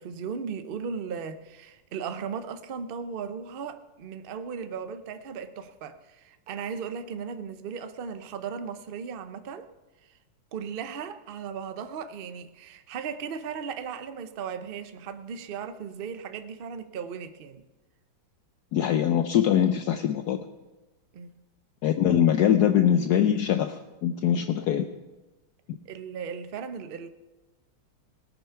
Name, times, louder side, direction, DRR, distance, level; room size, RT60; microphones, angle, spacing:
voice 1, 0.0-9.7 10.5-17.6 21.1-21.4 25.9-27.1, right 6 dB, 60° right, 10 dB, 0.5 m, -36 dB
voice 2, 18.7-20.4 21.8-24.9 25.7-25.8, left 10 dB, 70° left, 8 dB, 1.1 m, -23 dB
18.5 x 9.0 x 5.7 m, 1.1 s
omnidirectional pair, 2.0 m